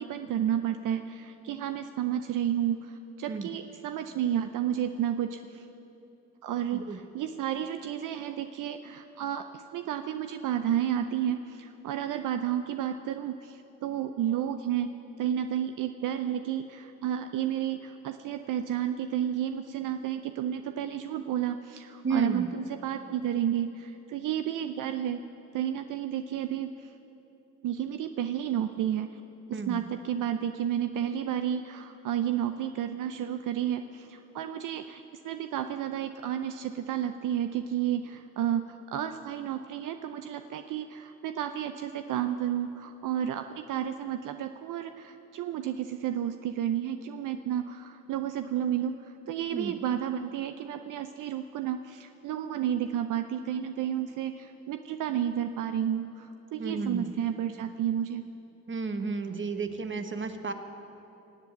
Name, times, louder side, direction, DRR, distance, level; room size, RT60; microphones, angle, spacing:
voice 1, 0.0-5.7 6.4-25.2 25.5-26.9 27.6-29.2 29.5-58.3, right 10 dB, 75° right, 8 dB, 0.6 m, -31 dB
voice 2, 22.0-22.5 29.5-29.9 49.5-49.7 56.6-57.1 58.7-60.5, right 4 dB, 35° right, 7 dB, 1.4 m, -32 dB
18.5 x 8.0 x 8.0 m, 3.0 s
supercardioid pair, 45°, 32 cm